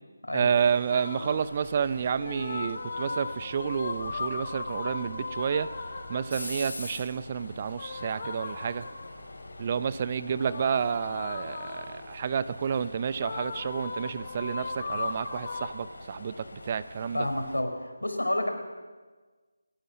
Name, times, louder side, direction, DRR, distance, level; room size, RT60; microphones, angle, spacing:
voice 1, 0.3-5.7 6.1-8.8 9.6-17.3, right 7 dB, 30° right, 15 dB, 0.6 m, -30 dB
sound 1, 0.5-17.6, left 2 dB, 60° left, 5.0 m, -45 dB
sound 2, 0.9-1.5 2.2-6.4 7.7-9.3 10.4-12.1 13.2-15.7, left 4 dB, 40° left, 2.3 m, -37 dB
voice 2, 17.1-17.7 18.0-18.5, left 1 dB, 75° left, 4 dB, 5.2 m, -29 dB
29.5 x 16.5 x 6.5 m, 1.4 s
figure-of-eight pair, 155°, 0 cm